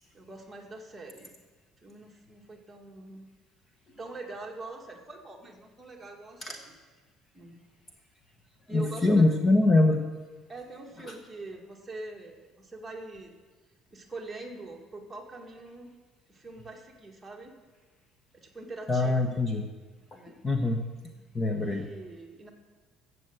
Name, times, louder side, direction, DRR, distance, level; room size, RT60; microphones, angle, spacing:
voice 1, 0.1-1.3 1.8-3.3 4.0-6.7 7.3-7.6 8.7-9.5 10.5-13.3 13.9-15.9 16.3-17.6 18.3-19.3 20.1-20.4 21.6-22.5, right 2 dB, 10° right, 0 dB, 1.9 m, -43 dB
voice 2, 8.7-10.0 11.0-11.1 18.9-19.7 20.1-20.8 21.3-21.9, left 2 dB, 20° left, 5 dB, 1.0 m, -24 dB
13.5 x 7.9 x 7.9 m, 1.3 s
cardioid pair, 150°, 0 cm